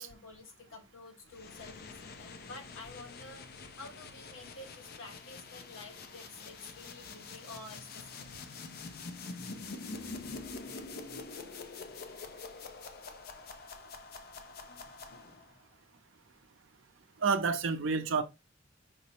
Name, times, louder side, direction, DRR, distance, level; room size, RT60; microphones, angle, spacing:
voice 1, 0.0-8.9 9.4-11.2 14.7-15.5, left 2 dB, 80° left, 1.0 m, -51 dB
sound 1, 1.3-15.6, left 4 dB, 55° left, 0.5 m, -46 dB
voice 2, 17.2-18.2, right 5 dB, 75° right, 0.6 m, -29 dB
5.1 x 2.0 x 4.2 m
head